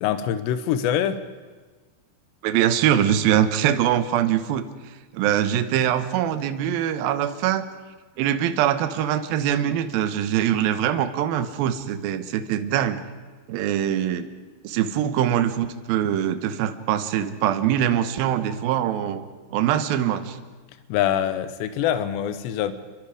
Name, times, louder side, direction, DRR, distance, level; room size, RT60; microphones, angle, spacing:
voice 1, 0.0-1.2 20.9-22.7, left 10 dB, 75° left, 11 dB, 3.1 m, -24 dB
voice 2, 2.4-7.7 8.2-13.0 13.5-14.3 14.6-19.2 19.5-20.4, right 10 dB, 70° right, 10 dB, 2.4 m, -23 dB
27.0 x 23.0 x 5.1 m, 1.3 s
omnidirectional pair, 5.2 m